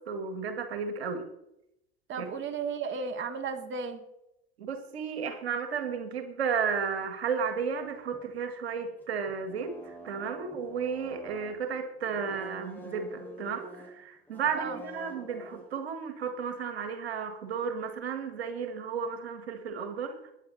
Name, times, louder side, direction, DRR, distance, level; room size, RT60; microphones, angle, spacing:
voice 1, 0.1-1.2 2.2-2.3 4.6-9.7 10.0-20.3, right 6 dB, 80° right, 7 dB, 1.9 m, -33 dB
voice 2, 2.1-4.0 14.6-14.8, right 5 dB, 40° right, 5 dB, 2.1 m, -34 dB
sound 1, 7.7-11.8 12.1-14.0 14.3-15.7, right 1 dB, 5° left, 5.8 m, -47 dB
21.0 x 9.5 x 4.2 m, 0.83 s
hypercardioid pair, 75°, 31 cm